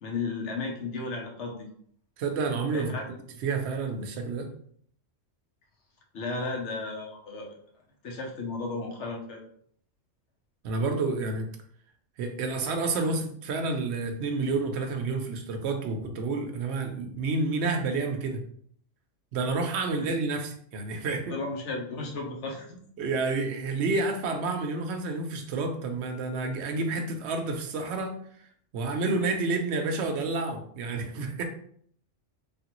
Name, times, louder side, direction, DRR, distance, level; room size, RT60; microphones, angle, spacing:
voice 1, 0.0-1.7 2.7-3.1 6.1-7.5 8.0-9.4 20.0-20.1 21.3-22.8, left 3 dB, 70° left, 0 dB, 1.1 m, -34 dB
voice 2, 2.2-3.0 3.4-4.5 10.6-11.5 12.2-18.4 19.3-21.3 23.0-28.1 28.7-31.4, right 3 dB, 65° right, 5 dB, 0.8 m, -29 dB
3.4 x 2.4 x 2.9 m, 0.62 s
omnidirectional pair, 1.3 m